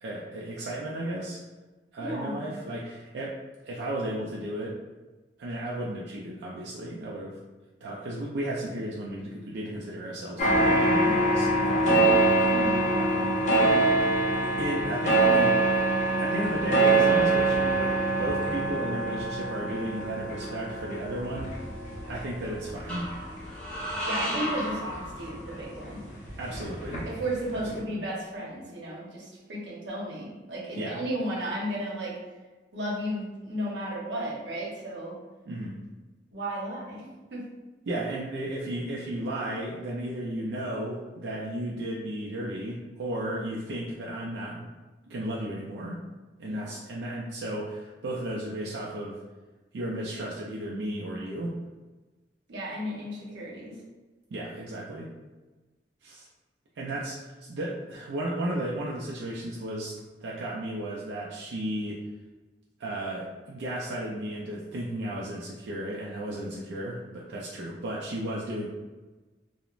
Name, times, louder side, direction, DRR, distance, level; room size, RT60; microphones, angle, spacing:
voice 1, 0.0-1.4 1.9-3.4 3.6-4.8 5.4-7.4 7.8-12.0 12.9-13.4 14.6-15.6 16.2-21.5 22.1-23.1 26.4-27.1 27.5-28.1 30.8-31.0 35.5-35.8 37.9-44.7 45.1-46.0 46.4-49.2 49.7-51.6 54.3-55.1 56.0-56.3 56.8-62.0 62.8-68.7, right 1 dB, 75° right, -4 dB, 0.4 m, -34 dB
voice 2, 2.0-2.5 12.5-12.9 24.1-26.0 27.0-32.1 32.7-35.1 36.3-37.4 46.4-46.7 52.5-53.8, right 1 dB, 90° right, -4 dB, 0.8 m, -34 dB
sound 1, 10.4-25.5 25.9-27.3 27.5-27.6, right 2 dB, 45° left, 0.6 m, -25 dB
sound 2, 21.2-22.0 22.9-25.8, equal, 5° left, 0.8 m, -35 dB
3.0 x 2.0 x 2.4 m, 1.2 s
head